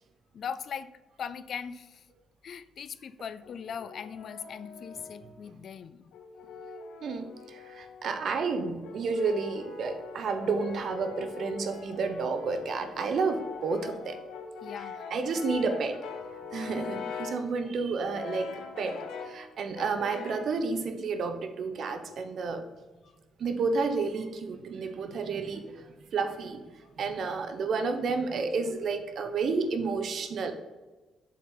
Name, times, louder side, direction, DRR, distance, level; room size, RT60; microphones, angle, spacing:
voice 1, 0.3-0.9 1.2-2.0 2.4-6.1 14.6-15.1 17.6-17.8, left 7 dB, 60° left, 14 dB, 0.3 m, -40 dB
Brass instrument, 3.4-5.4 6.1-8.2 8.8-17.5 18.1-19.4 19.8-20.6, left 5 dB, 85° left, 0.7 m, -42 dB
voice 2, 7.0-14.2 15.1-16.0 16.5-22.6 23.4-26.6 27.0-30.5, right 4 dB, 60° right, 8 dB, 0.8 m, -31 dB
7.3 x 4.4 x 3.8 m, 1.2 s
cardioid pair, 90°, 0 cm